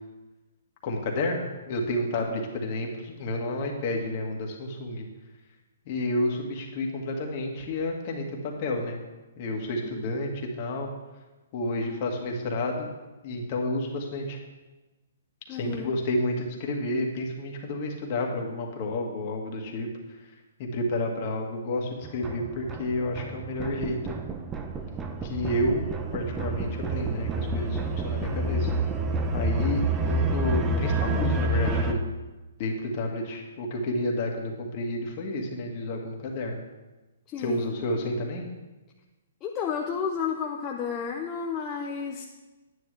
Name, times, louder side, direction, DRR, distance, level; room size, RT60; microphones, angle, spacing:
voice 1, 0.8-5.1 5.9-9.0 9.4-10.9 11.5-12.9 13.2-14.4 15.5-20.3 20.6-24.2 25.2-25.8 26.1-28.7 29.3-32.0 32.6-36.6 37.4-38.5, left 1 dB, 40° left, 1 dB, 1.9 m, -30 dB
voice 2, 15.5-15.9 37.3-37.7 39.4-42.2, left 6 dB, 25° left, 0 dB, 0.7 m, -32 dB
sound 1, 22.0-31.9, right 2 dB, 15° right, 0.8 m, -28 dB
9.7 x 9.7 x 3.4 m, 1.1 s
hypercardioid pair, 140°, 0 cm